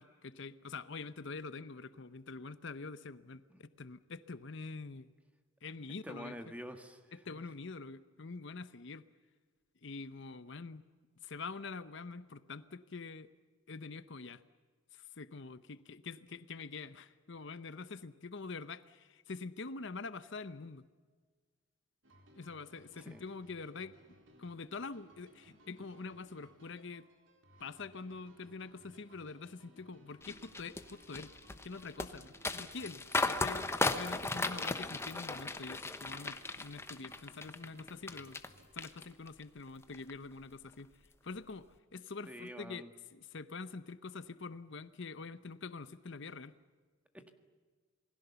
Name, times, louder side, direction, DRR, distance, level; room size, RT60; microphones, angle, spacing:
voice 1, 0.0-5.1 5.6-6.5 7.1-9.0 9.8-10.8 11.2-13.3 13.7-14.4 14.9-20.8 22.3-23.9 24.4-27.1 27.6-38.4 38.7-42.8 43.1-46.5, left 4 dB, 60° left, 13 dB, 0.8 m, -45 dB
voice 2, 6.0-7.4 23.0-23.2 42.3-42.9 47.1-47.3, equal, 5° right, 7 dB, 1.7 m, -47 dB
sound 1, 22.0-38.7, right 1 dB, 60° right, 3.8 m, -63 dB
sound 2, 30.2-38.5 38.8-39.4 39.8-40.1, left 2 dB, 10° left, 1.0 m, -36 dB
28.0 x 20.5 x 7.0 m, 1.5 s
head